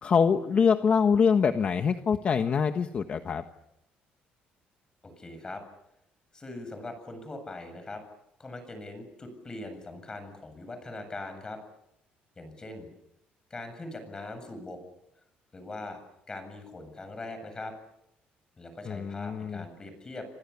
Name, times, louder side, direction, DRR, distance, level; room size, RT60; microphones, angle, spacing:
voice 1, 0.0-3.4 18.9-19.6, left 6 dB, 40° left, 7 dB, 1.4 m, -24 dB
voice 2, 5.0-5.6 6.3-8.0 8.4-11.6 12.4-12.9 13.5-14.8 15.5-16.0 16.3-17.7 18.6-20.3, left 2 dB, 20° left, 8 dB, 7.9 m, -41 dB
29.5 x 26.0 x 7.2 m, 0.83 s
cardioid pair, 135°, 3 cm